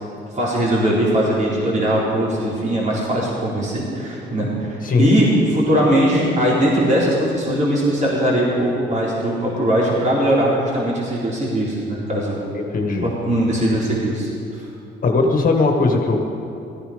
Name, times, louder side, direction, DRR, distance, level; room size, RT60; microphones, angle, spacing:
voice 1, 0.4-12.4 13.0-14.7, right 1 dB, 35° right, -5 dB, 4.2 m, -20 dB
voice 2, 4.8-5.2 12.5-13.2 15.0-16.2, left 3 dB, 45° left, 2 dB, 1.8 m, -19 dB
17.0 x 14.5 x 5.2 m, 2.6 s
cardioid pair, 90°, 20 cm